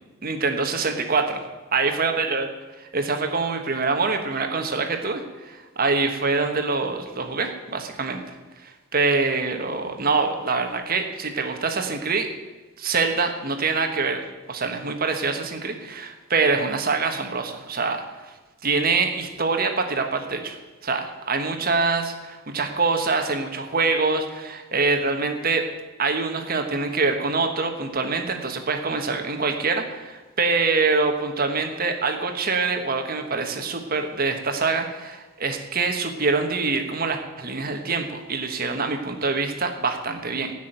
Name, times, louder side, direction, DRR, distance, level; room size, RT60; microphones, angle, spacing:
voice 1, 0.2-1.4 1.7-2.5 2.8-8.2 8.6-12.3 12.8-14.2 14.5-18.3 18.6-25.6 26.0-40.5, right 4 dB, 45° right, 5 dB, 1.4 m, -25 dB
15.0 x 6.2 x 8.9 m, 1.2 s
head